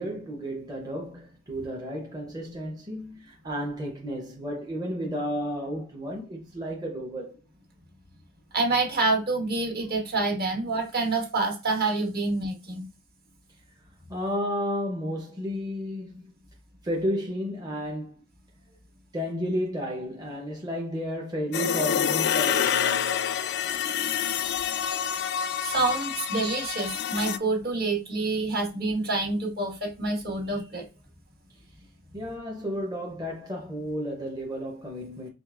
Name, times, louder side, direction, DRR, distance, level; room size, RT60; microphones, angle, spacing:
voice 1, 0.0-7.4 14.1-16.3 16.8-18.2 19.1-23.4 31.5-31.6 32.1-35.3, equal, 20° right, 0.7 m, -32 dB
voice 2, 8.5-12.9 25.6-30.8, right 3 dB, 50° right, 1.5 m, -27 dB
sound 1, 21.5-27.4, left 8 dB, 55° left, 0.4 m, -27 dB
5.0 x 3.2 x 2.4 m
head